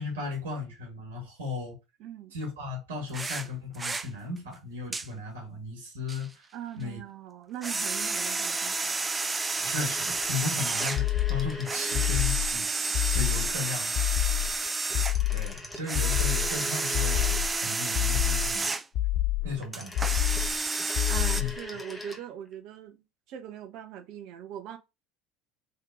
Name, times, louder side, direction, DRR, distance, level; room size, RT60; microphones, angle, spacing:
voice 1, 0.0-1.7 2.3-6.3 6.8-7.0 9.6-14.1 15.3-18.7 19.4-20.2 21.4-21.5, left 4 dB, 75° right, 1.6 m, -36 dB
voice 2, 2.0-2.4 6.5-9.0 21.1-23.0 23.3-24.8, right 10 dB, 55° right, 0.8 m, -41 dB
sound 1, 3.1-3.5 3.7-4.1 4.9-5.1 6.1-6.3 7.6-11.0 11.7-15.2 15.8-18.8 19.7-21.4, right 3 dB, 20° right, 0.4 m, -30 dB
sound 2, 9.6-12.4 14.9-17.8 19.4-22.3 22.5-22.6, left 1 dB, 10° left, 1.1 m, -42 dB
sound 3, 11.0-11.6 11.9-12.6 12.9-13.6 13.9-14.6 14.9-15.6 15.9-16.6 16.9-17.6 17.9-18.6 18.9-19.6 19.9-20.6 20.9-21.6, left 15 dB, 50° left, 0.3 m, -27 dB
3.7 x 2.8 x 4.8 m
figure-of-eight pair, 65°, 0 cm